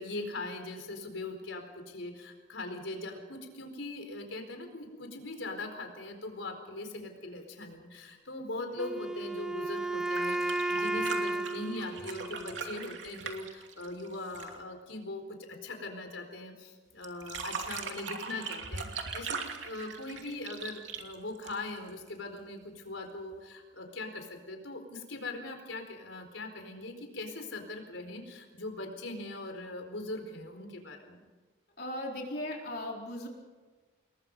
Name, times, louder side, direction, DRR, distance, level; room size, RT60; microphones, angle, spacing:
voice 1, 0.0-31.2, left 2 dB, 90° left, 5 dB, 4.4 m, -41 dB
Wind instrument woodwind instrument, 8.8-12.8, right 2 dB, 5° right, 0.7 m, -33 dB
sound 1, 9.9-14.6 17.0-21.9 23.3-23.4, right 5 dB, 75° right, 2.8 m, -40 dB
voice 2, 31.8-33.3, left 1 dB, 55° left, 0 dB, 4.3 m, -37 dB
28.5 x 21.0 x 5.5 m, 1.3 s
head